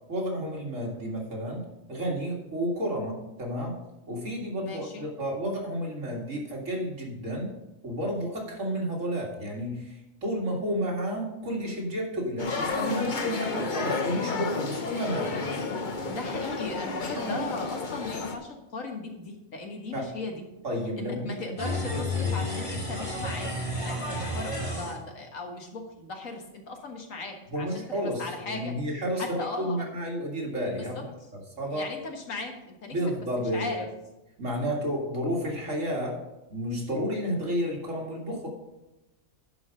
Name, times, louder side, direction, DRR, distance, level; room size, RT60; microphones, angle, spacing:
voice 1, 0.1-1.6 1.9-3.7 4.1-7.5 7.8-15.4 17.2-17.4 19.9-20.1 20.6-21.4 21.7-22.4 27.5-31.1 31.6-31.9 32.9-33.9 34.4-36.2 36.5-38.5, equal, 70° right, -2 dB, 2.6 m, -31 dB
voice 2, 4.6-5.0 16.1-20.4 21.0-28.7 29.2-29.9 30.8-31.0 31.7-33.9, left 3 dB, 80° left, 3 dB, 1.9 m, -38 dB
sound 1, 12.4-18.4, left 3 dB, 40° left, 1.0 m, -31 dB
sound 2, 21.6-24.9, left 1 dB, 25° left, 2.9 m, -31 dB
11.0 x 4.9 x 6.3 m, 0.96 s
omnidirectional pair, 1.4 m